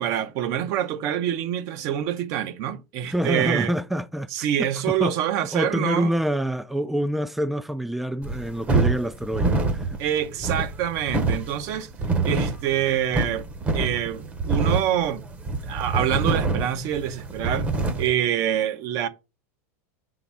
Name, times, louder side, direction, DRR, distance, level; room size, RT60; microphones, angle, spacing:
voice 1, 0.0-3.7 4.3-6.2 10.0-11.9 12.2-13.5 13.7-15.2 15.6-17.7 18.0-19.1, right 10 dB, 45° right, 0.9 m, -26 dB
voice 2, 3.1-4.3 4.6-5.2 5.5-9.9, equal, ahead, 0.4 m, -26 dB
sound 1, 8.2-18.1, right 3 dB, 15° right, 0.9 m, -26 dB
6.2 x 3.9 x 5.8 m
supercardioid pair, 150°, 8 cm